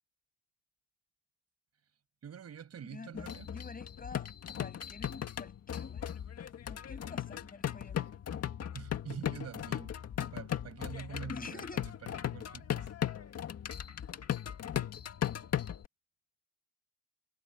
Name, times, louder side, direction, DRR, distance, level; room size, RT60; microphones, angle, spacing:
voice 1, 2.2-3.5 8.7-9.9 10.3-12.9, right 8 dB, 55° right, 7.0 m, -46 dB
voice 2, 2.8-4.3 4.6-6.1 6.7-8.0 11.3-11.8, left 4 dB, 30° left, 7.2 m, -47 dB
sound 1, 3.2-15.9, left 10 dB, 55° left, 2.0 m, -37 dB
cardioid pair, 90°, 30 cm